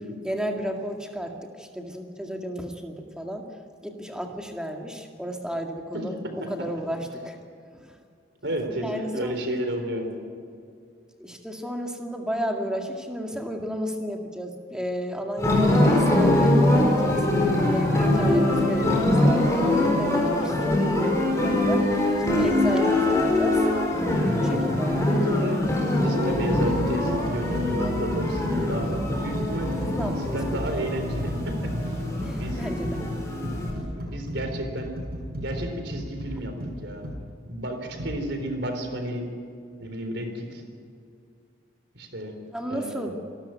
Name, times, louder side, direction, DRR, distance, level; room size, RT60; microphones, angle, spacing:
voice 1, 0.2-3.5 3.8-6.2 6.5-7.4 7.7-7.9 8.7-9.4 11.2-17.2 17.7-21.9 22.3-23.6 24.3-25.3 29.8-30.4 30.7-30.8 32.2-33.0 42.5-43.1, equal, 5° right, 2 dB, 2.0 m, -33 dB
voice 2, 8.4-10.1 18.0-18.3 25.1-29.7 30.2-32.6 33.9-35.0 35.2-36.5 36.8-37.1 37.5-39.2 39.8-40.6 41.9-42.3 42.7-43.1, right 1 dB, 65° right, 5 dB, 3.9 m, -32 dB
sound 1, 15.4-33.7, left 1 dB, 15° left, 4.4 m, -23 dB
sound 2, 26.3-37.2 38.0-38.2, equal, 50° right, 5.8 m, -33 dB
27.0 x 13.0 x 9.2 m, 2.3 s
head